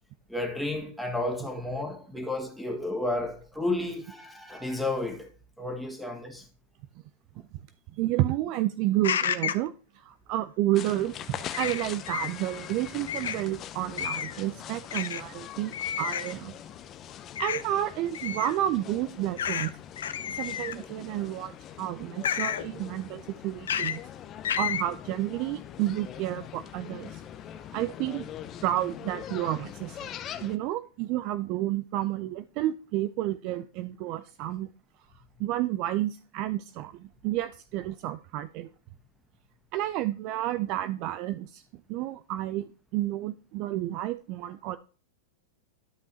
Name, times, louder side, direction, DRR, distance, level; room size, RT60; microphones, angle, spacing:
voice 1, 0.3-5.3 5.6-6.4, left 2 dB, ahead, 1.7 m, -32 dB
voice 2, 8.0-16.5 17.4-19.7 20.3-24.0 24.5-27.2 27.7-28.3 28.6-30.1 30.4-34.7 35.4-38.7 39.7-41.6 41.9-42.6 42.9-44.8, right 14 dB, 50° right, 0.4 m, -30 dB
sound 1, 9.0-9.7 11.5-12.3 13.1-13.4 14.0-14.4 14.9-15.2 15.7-16.3 17.4-17.6 18.1-18.5 19.4-19.7 20.0-20.8 22.2-22.6 23.7-24.0 24.4-24.8, left 9 dB, 85° left, 0.6 m, -30 dB
sound 2, 10.7-30.6, left 10 dB, 35° left, 0.7 m, -43 dB
12.0 x 5.4 x 2.8 m
hypercardioid pair, 120°, 0 cm